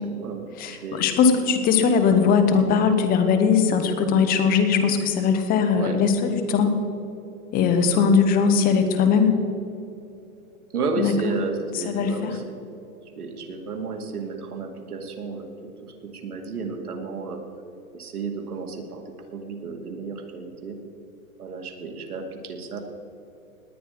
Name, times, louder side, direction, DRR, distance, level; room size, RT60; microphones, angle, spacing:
voice 1, 0.0-1.0 5.7-6.0 7.8-7.9 10.7-12.5 13.2-17.4 17.9-20.8 21.4-22.8, right 4 dB, 85° right, 4 dB, 2.5 m, -32 dB
voice 2, 0.6-6.7 7.5-9.4 11.0-11.3 11.8-12.4, left 6 dB, 20° left, 8 dB, 1.2 m, -20 dB
19.0 x 9.7 x 5.2 m, 2.8 s
hypercardioid pair, 145°, 43 cm